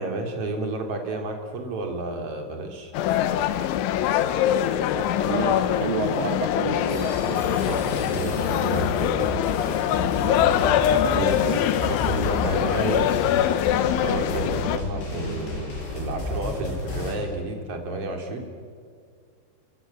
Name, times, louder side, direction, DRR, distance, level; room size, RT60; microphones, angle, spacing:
voice 1, 0.0-2.9 7.5-7.8 8.1-9.3 11.2-11.4 11.8-13.1 13.8-18.5, right 2 dB, 35° right, 3 dB, 3.6 m, -31 dB
sound 1, 2.9-14.8, left 11 dB, 85° left, 3.5 m, -23 dB
voice 2, 4.7-7.2 8.1-8.2 10.2-10.5 11.1-11.6, right 7 dB, 65° right, 6 dB, 2.5 m, -31 dB
sound 2, 6.9-17.1, left 1 dB, 70° left, 9.1 m, -32 dB
27.5 x 24.5 x 7.4 m, 2.2 s
omnidirectional pair, 5.4 m